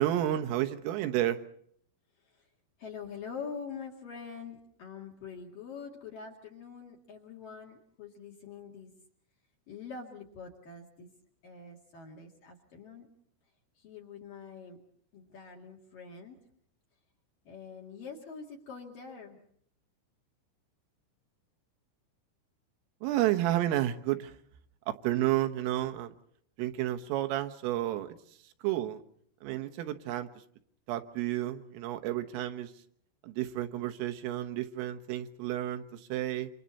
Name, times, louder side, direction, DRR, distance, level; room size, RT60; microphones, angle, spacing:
voice 1, 0.0-1.4 23.0-24.3 24.9-26.1 26.6-28.2 28.6-29.0 29.4-30.3 30.9-32.7 33.2-36.5, right 13 dB, 85° right, 8 dB, 3.8 m, -31 dB
voice 2, 2.8-8.9 9.7-11.1 11.4-13.1 13.8-14.8 15.1-16.4 17.4-19.4, left 5 dB, 50° left, -1 dB, 3.4 m, -45 dB
27.5 x 26.0 x 4.2 m, 0.65 s
omnidirectional pair, 5.8 m